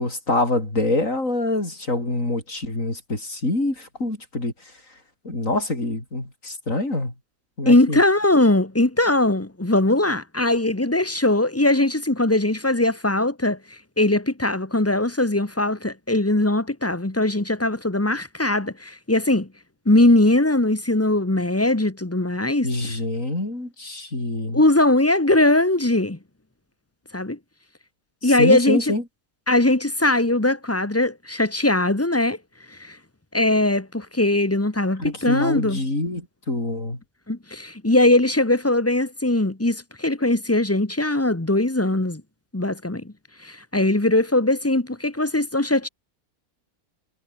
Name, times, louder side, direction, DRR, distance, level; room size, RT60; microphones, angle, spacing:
voice 1, 0.0-4.5 5.2-7.1 7.6-8.0 22.6-24.6 28.2-29.0 35.0-37.0, left 2 dB, 55° left, 7.4 m, -25 dB
voice 2, 7.6-13.6 14.0-19.5 19.8-22.9 24.5-26.2 27.1-27.4 28.2-28.9 29.5-32.4 32.7-33.0 33.3-35.8 37.3-42.2 42.5-43.0 43.4-45.9, left 2 dB, 10° left, 1.3 m, -20 dB
omnidirectional pair, 1.6 m